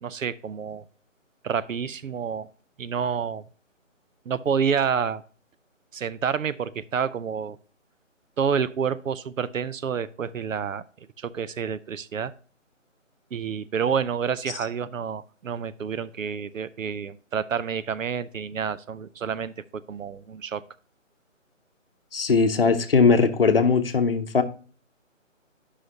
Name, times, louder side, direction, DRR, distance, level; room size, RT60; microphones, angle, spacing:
voice 1, 0.0-0.8 1.4-2.5 2.8-3.4 4.3-5.2 5.9-7.6 8.4-10.8 11.2-12.3 13.3-20.6, right 7 dB, 75° right, 16 dB, 0.7 m, -28 dB
voice 2, 22.1-24.4, left 4 dB, 45° left, 9 dB, 0.8 m, -20 dB
11.5 x 5.7 x 2.6 m, 0.42 s
hypercardioid pair, 170°, 39 cm